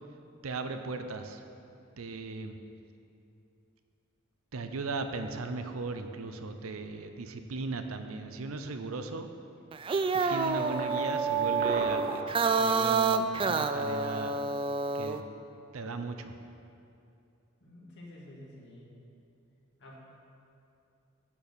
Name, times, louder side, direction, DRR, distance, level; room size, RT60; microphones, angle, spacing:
voice 1, 0.4-1.4 2.0-2.6 4.5-9.3 10.3-14.4 14.9-15.3 15.7-16.4, right 3 dB, 85° right, 8 dB, 0.6 m, -37 dB
sound 1, 6.8-7.0 10.0-11.0 11.4-12.4, right 1 dB, 45° right, 1.2 m, -39 dB
sound 2, 9.7-15.2, right 4 dB, 25° right, 0.3 m, -28 dB
voice 2, 17.6-18.9 19.8-20.0, left 1 dB, 60° left, -4 dB, 2.2 m, -50 dB
10.5 x 4.5 x 6.7 m, 2.6 s
head